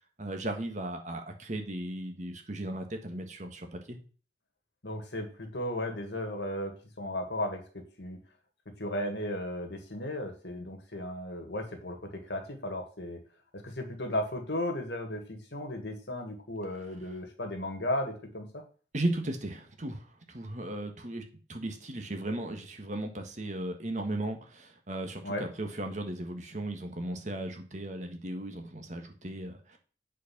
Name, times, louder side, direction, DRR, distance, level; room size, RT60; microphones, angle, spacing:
voice 1, 0.2-4.0 18.9-21.2 21.5-29.8, right 1 dB, 40° right, 5 dB, 1.5 m, -36 dB
voice 2, 4.8-8.2 8.8-13.2 13.5-18.6 25.2-25.4, left 1 dB, 70° left, 4 dB, 1.8 m, -35 dB
8.2 x 4.7 x 5.9 m, 0.39 s
head